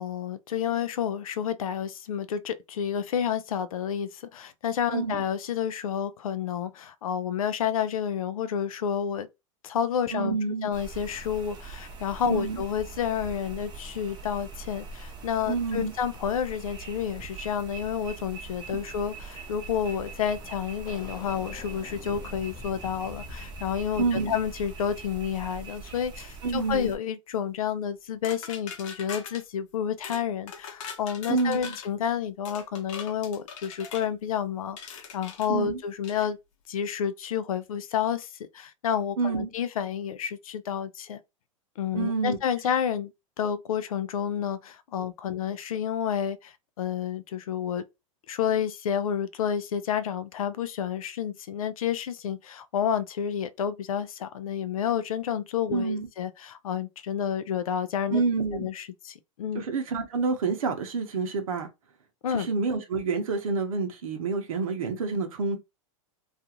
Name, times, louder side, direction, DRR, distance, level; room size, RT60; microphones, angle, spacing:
voice 1, 0.0-9.3 9.6-36.4 36.7-41.2 41.8-43.1 43.4-47.8 48.3-58.2 58.5-59.6 62.2-62.5, left 8 dB, 85° left, 0.4 m, -30 dB
voice 2, 4.9-5.2 10.1-10.7 12.2-12.6 15.5-15.9 18.7-18.8 24.0-24.3 26.4-26.9 31.3-31.7 35.5-35.8 39.2-39.5 41.9-42.4 55.7-56.1 58.1-58.7 59.5-61.7 62.3-65.6, right 4 dB, 80° right, 0.7 m, -28 dB
sound 1, 10.7-27.0, right 4 dB, 25° right, 0.7 m, -42 dB
sound 2, 19.4-19.5 19.8-26.0, left 4 dB, 20° left, 1.0 m, -48 dB
sound 3, 28.2-29.4 30.0-30.2 30.5-31.9 32.4-34.1 34.8-35.5 36.0-36.3, left 6 dB, 65° left, 0.9 m, -41 dB
2.4 x 2.4 x 2.9 m
hypercardioid pair, 115°, 18 cm